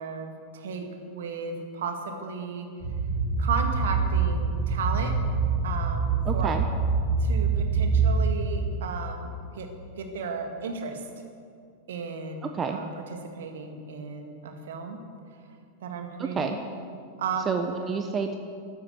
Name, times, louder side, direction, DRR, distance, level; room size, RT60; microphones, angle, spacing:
voice 1, 0.0-2.7 3.4-5.1 5.6-6.5 7.2-9.7 10.0-11.0 11.9-12.9 13.4-15.0 15.8-16.5 17.2-17.6, right 5 dB, 60° right, 5 dB, 2.0 m, -34 dB
sound 1, 2.8-8.5, right 4 dB, 40° right, 4.3 m, -25 dB
voice 2, 6.3-6.6 12.4-12.8 16.2-16.6 17.5-18.4, right 5 dB, 25° right, 6 dB, 1.0 m, -29 dB
13.0 x 12.5 x 8.2 m, 2.3 s
figure-of-eight pair, 90°, 0 cm